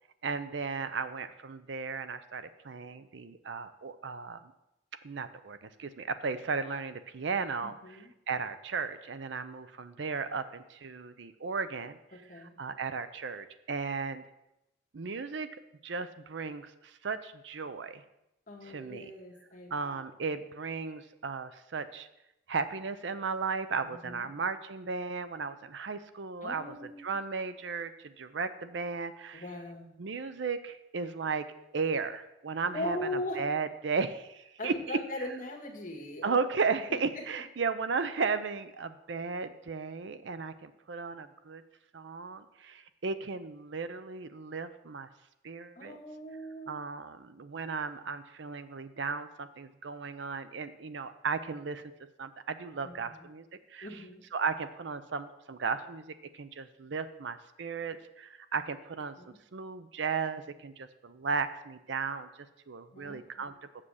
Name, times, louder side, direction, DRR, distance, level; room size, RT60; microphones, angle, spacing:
voice 1, 0.2-4.4 5.0-12.0 12.3-14.2 14.9-15.5 15.8-18.0 18.6-19.1 19.7-22.1 22.5-29.5 30.0-31.4 31.7-35.3 36.2-41.6 41.9-45.1 45.4-46.0 46.7-51.8 52.2-53.4 53.7-54.0 54.3-59.1 59.5-62.3 62.7-63.5, right 5 dB, 70° right, 12 dB, 0.5 m, -35 dB
voice 2, 7.6-8.1 12.1-12.5 18.5-19.7 23.8-24.3 26.4-27.1 29.3-29.9 32.7-33.4 34.6-36.4 37.2-37.3 45.8-46.7 52.8-53.1 53.8-54.2 59.2-59.4 62.9-63.5, left 1 dB, 45° left, -1 dB, 1.8 m, -40 dB
7.5 x 7.1 x 6.4 m, 0.89 s
head